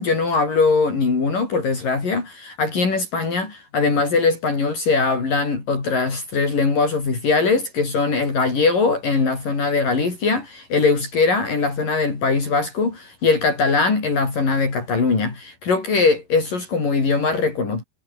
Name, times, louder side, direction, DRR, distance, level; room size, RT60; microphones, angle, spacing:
voice 1, 0.0-17.8, left 4 dB, 55° left, 7.6 m, -21 dB
omnidirectional pair, 4.6 m